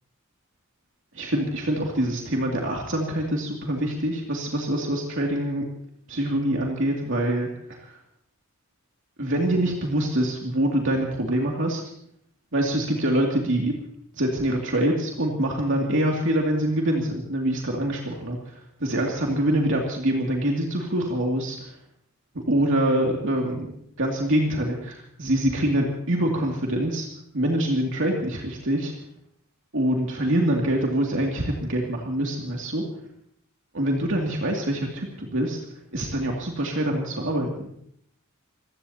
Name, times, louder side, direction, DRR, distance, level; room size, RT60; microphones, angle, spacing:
voice 1, 1.1-5.7 6.1-7.9 9.2-11.8 12.5-13.7 14.1-21.7 22.3-23.7 24.0-27.1 27.3-28.9 29.7-32.8 33.7-35.6 35.9-37.7, right 1 dB, 65° right, -1 dB, 2.6 m, -25 dB
27.0 x 16.5 x 2.9 m, 0.69 s
head